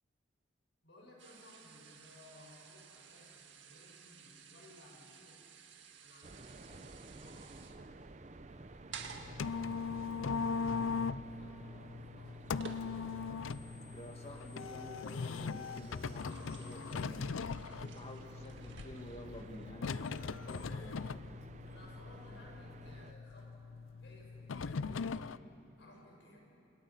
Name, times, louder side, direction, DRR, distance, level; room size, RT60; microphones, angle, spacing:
voice 1, 0.8-5.5 6.0-7.6 8.5-10.8 11.1-12.8 21.7-25.3 25.8-26.4, left 1 dB, 65° left, -1 dB, 6.0 m, -59 dB
sound 1, 1.2-13.4 13.8-14.1 14.7-19.7, right 6 dB, 70° right, 1.8 m, -55 dB
sound 2, 6.2-23.1, right 2 dB, 35° right, 0.7 m, -53 dB
sound 3, 8.9-25.4, left 5 dB, 85° left, 0.5 m, -40 dB
voice 2, 13.9-17.4 17.7-21.1, left 1 dB, 30° left, 3 dB, 2.1 m, -51 dB
29.5 x 27.0 x 5.8 m, 2.7 s
head